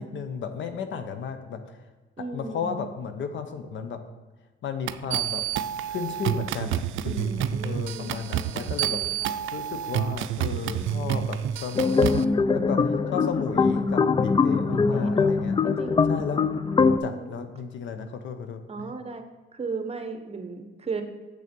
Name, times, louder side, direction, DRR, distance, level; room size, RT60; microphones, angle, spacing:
voice 1, 0.0-1.8 2.3-4.0 4.6-5.4 5.9-9.0 9.5-15.6 16.1-16.4 17.0-18.9, left 6 dB, 70° left, 8 dB, 0.9 m, -34 dB
voice 2, 2.2-2.8 7.0-9.3 10.6-11.2 12.5-13.2 14.7-16.1 17.0-17.4 18.7-19.2 19.5-21.0, right 4 dB, 30° right, 7 dB, 1.0 m, -37 dB
sound 1, 4.9-12.2, right 10 dB, 80° right, 0.4 m, -29 dB
sound 2, 11.7-17.0, left 4 dB, 25° left, 0.4 m, -22 dB
6.7 x 6.6 x 5.3 m, 1.3 s
cardioid pair, 90°, 20 cm